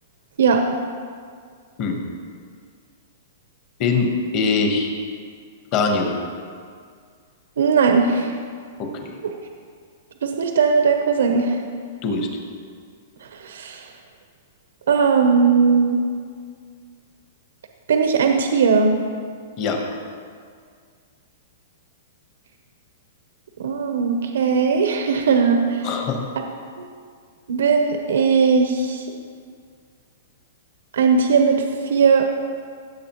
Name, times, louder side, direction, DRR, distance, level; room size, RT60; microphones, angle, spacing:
voice 1, 3.8-4.9 5.7-6.1 8.8-9.1 12.0-12.3 19.6-19.8 25.8-26.2, left 4 dB, 30° left, 3 dB, 1.1 m, -22 dB
voice 2, 7.6-8.3 9.2-9.3 10.2-11.6 13.3-13.8 14.9-16.0 17.9-19.0 23.6-25.9 26.8-26.9 27.5-29.0 30.9-32.3, right 5 dB, 85° right, 4 dB, 0.8 m, -18 dB
16.0 x 7.4 x 3.1 m, 2.1 s
hypercardioid pair, 170°, 0 cm